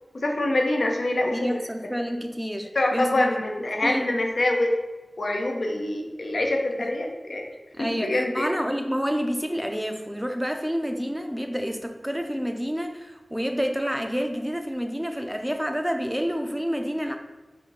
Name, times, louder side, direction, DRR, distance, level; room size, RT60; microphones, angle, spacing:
voice 1, 0.1-1.6 2.7-4.7 5.2-7.4 7.8-8.5, left 1 dB, 75° left, 1 dB, 0.6 m, -25 dB
voice 2, 1.3-3.3 3.6-4.1 6.8-6.9 7.8-17.2, equal, 5° right, 5 dB, 0.5 m, -29 dB
4.3 x 2.7 x 3.9 m, 1.1 s
wide cardioid pair, 60°, 0 cm